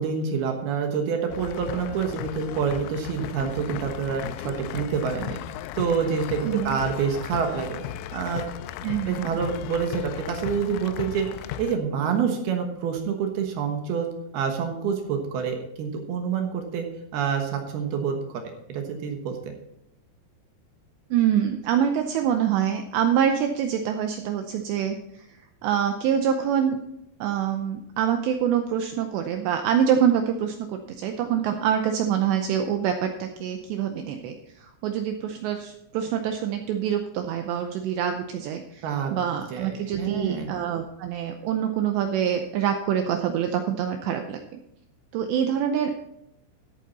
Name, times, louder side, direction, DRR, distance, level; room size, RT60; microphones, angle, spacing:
voice 1, 0.0-5.4 5.8-7.8 8.1-8.4 9.1-14.1 14.3-16.9 17.1-18.4 18.7-19.5 38.8-39.1 39.5-40.5, right 6 dB, 70° right, 4 dB, 2.6 m, -27 dB
sound 1, 1.3-11.8, left 11 dB, 85° left, 3.1 m, -36 dB
voice 2, 6.4-6.8 8.8-9.3 21.1-25.0 25.6-26.8 27.2-44.6 45.1-45.9, right 9 dB, 90° right, 5 dB, 2.5 m, -25 dB
14.0 x 8.5 x 4.1 m, 0.81 s
omnidirectional pair, 5.9 m